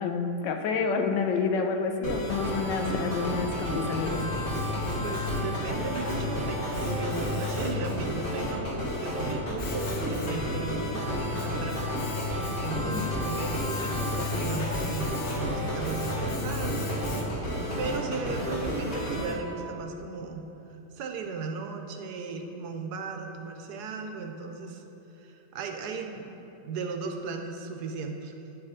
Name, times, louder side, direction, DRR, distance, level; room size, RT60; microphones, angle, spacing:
voice 1, 0.0-4.2 12.9-13.1 15.3-15.4, left 5 dB, 90° left, 5 dB, 1.4 m, -29 dB
sound 1, 2.0-19.3, equal, 35° left, 1.5 m, -32 dB
Domestic sounds home sounds, 3.8-17.6, left 6 dB, 55° left, 0.8 m, -37 dB
voice 2, 4.8-11.9 12.2-20.5 20.9-24.8 25.2-28.3, right 4 dB, 75° right, 4 dB, 1.2 m, -36 dB
9.7 x 4.8 x 4.9 m, 3.0 s
omnidirectional pair, 1.9 m